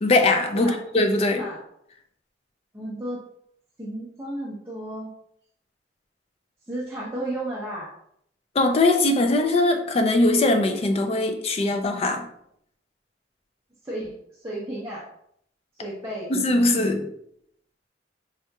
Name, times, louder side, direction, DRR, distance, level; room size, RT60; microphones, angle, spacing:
voice 1, 0.0-1.4 8.6-12.2 16.3-17.1, left 2 dB, 35° left, 5 dB, 0.4 m, -21 dB
voice 2, 2.7-3.2 3.8-5.1 6.7-7.9 13.8-15.0 15.8-16.3, right 1 dB, 15° right, -6 dB, 0.6 m, -33 dB
3.5 x 2.8 x 2.3 m, 0.71 s
head